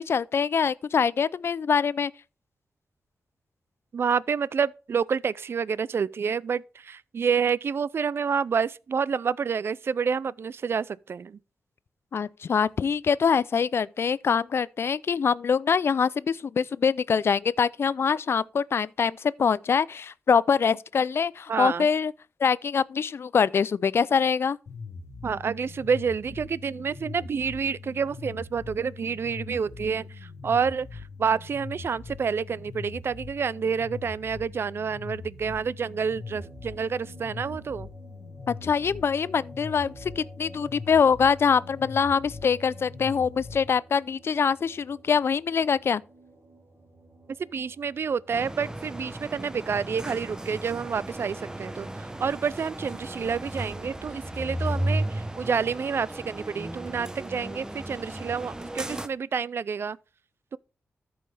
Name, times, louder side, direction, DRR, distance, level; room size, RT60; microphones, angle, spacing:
voice 1, 0.0-2.1 12.1-22.1 22.4-24.6 38.5-46.0, left 6 dB, 60° left, 0.3 m, -24 dB
voice 2, 3.9-11.4 21.5-21.9 25.2-37.9 47.4-60.0, right 6 dB, 60° right, 0.3 m, -28 dB
sound 1, 24.7-43.7, left 4 dB, 80° left, 1.2 m, -42 dB
sound 2, 36.0-48.9, right 2 dB, 40° right, 2.0 m, -52 dB
sound 3, 48.3-59.1, right 1 dB, 15° right, 0.9 m, -34 dB
13.5 x 5.5 x 3.3 m
cardioid pair, 80°, 5 cm